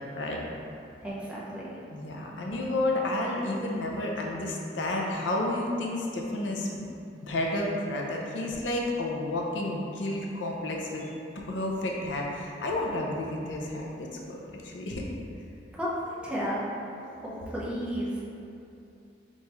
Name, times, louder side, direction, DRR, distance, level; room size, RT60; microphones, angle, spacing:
voice 1, 1.0-1.8 2.2-2.4 15.7-16.6 17.2-18.3, equal, 5° right, -7 dB, 0.7 m, -33 dB
voice 2, 1.9-6.8 7.2-11.2 11.5-14.4 14.6-15.0, left 1 dB, 75° left, -1 dB, 0.5 m, -31 dB
4.2 x 3.5 x 3.0 m, 2.7 s
head